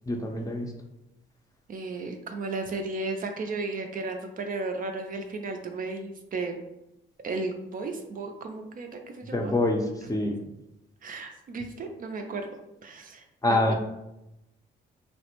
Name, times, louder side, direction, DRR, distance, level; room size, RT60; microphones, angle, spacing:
voice 1, 0.1-0.7 9.3-10.4 13.4-13.7, left 1 dB, 15° left, 1 dB, 0.5 m, -26 dB
voice 2, 1.7-6.5 7.2-9.5 11.0-12.5 12.8-13.2 13.5-13.7, right 3 dB, 45° right, 4 dB, 0.4 m, -34 dB
3.2 x 2.1 x 2.9 m, 0.90 s
cardioid pair, 90°, 20 cm